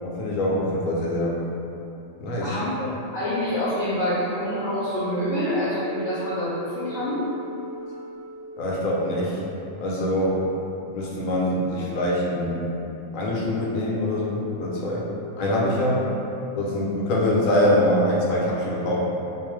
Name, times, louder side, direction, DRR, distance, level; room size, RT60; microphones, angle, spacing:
voice 1, 0.0-1.4 2.2-2.5 8.6-9.4 9.8-10.4 10.9-12.6 13.1-15.1 15.3-16.1 16.5-19.0, left 1 dB, 80° left, -4 dB, 1.0 m, -24 dB
voice 2, 2.4-2.9 3.1-7.3, left 1 dB, 55° left, -12 dB, 0.9 m, -26 dB
Wind instrument woodwind instrument, 4.4-8.7, right 2 dB, 80° right, 1.0 m, -38 dB
2.6 x 2.3 x 3.0 m, 2.8 s
omnidirectional pair, 1.4 m